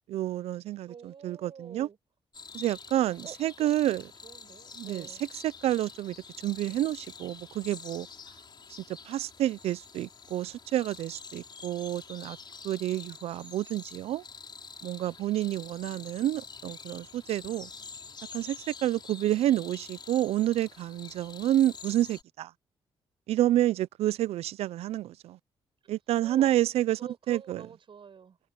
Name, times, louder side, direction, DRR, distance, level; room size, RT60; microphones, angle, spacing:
voice 1, 0.1-1.9 2.5-4.0 4.8-5.0 5.6-6.2 6.4-8.1 9.1-12.4 12.6-14.2 14.8-17.7 18.3-22.5 23.3-25.4 25.9-27.0 27.3-27.6, right 13 dB, 85° right, 0.6 m, -29 dB
voice 2, 0.9-2.0 3.2-5.3 25.8-26.0 26.2-26.6 27.0-28.4, right 6 dB, 55° right, 6.4 m, -48 dB
sound 1, 2.3-22.2, left 5 dB, 45° left, 4.8 m, -47 dB
cardioid pair, 70°, 10 cm